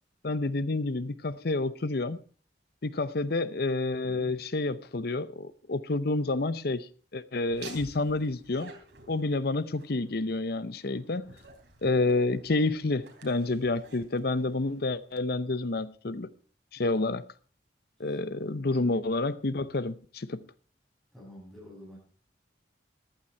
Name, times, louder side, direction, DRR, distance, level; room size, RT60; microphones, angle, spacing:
voice 1, 0.2-2.2 2.8-8.7 9.1-11.3 11.8-16.3 16.7-17.2 18.0-20.4, left 2 dB, 55° left, 0.7 m, -29 dB
voice 2, 4.0-4.4 16.8-16.9 18.0-18.2 21.1-22.0, left 1 dB, ahead, 7.7 m, -48 dB
Laughter, 7.5-15.1, right 4 dB, 75° right, 3.3 m, -52 dB
14.5 x 11.5 x 4.4 m
head